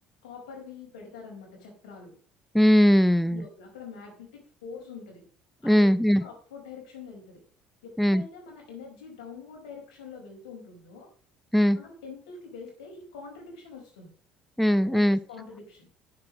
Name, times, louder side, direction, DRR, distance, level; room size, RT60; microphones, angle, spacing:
voice 1, 0.2-2.1 3.3-5.2 5.6-5.8 6.2-7.4 7.8-11.1 11.7-14.1 14.7-15.9, left 5 dB, 70° left, 1 dB, 4.7 m, -45 dB
voice 2, 2.5-3.4 5.6-6.2 8.0-8.2 11.5-11.8 14.6-15.2, equal, ahead, 18 dB, 0.4 m, -20 dB
9.7 x 7.7 x 6.3 m, 0.43 s
figure-of-eight pair, 55°, 4 cm